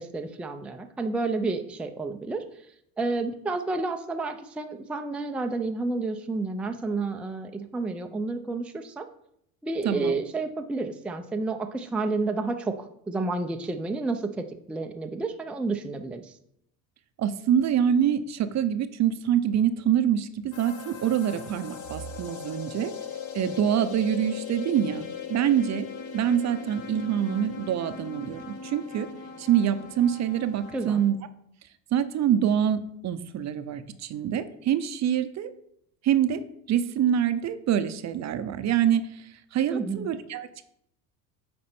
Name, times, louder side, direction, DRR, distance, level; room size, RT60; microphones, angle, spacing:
voice 1, 0.0-2.4 3.0-9.1 9.6-16.4 30.7-31.0 39.7-40.1, right 3 dB, 5° right, 5 dB, 0.4 m, -30 dB
voice 2, 17.2-22.9 23.3-25.9 26.1-29.1 29.4-31.2 31.9-35.5 36.0-36.4 36.7-39.2 39.5-40.6, right 9 dB, 45° right, 11 dB, 0.6 m, -25 dB
sound 1, 20.5-31.1, left 7 dB, 45° left, 1.1 m, -39 dB
8.5 x 4.3 x 4.4 m, 0.72 s
supercardioid pair, 105°, 41 cm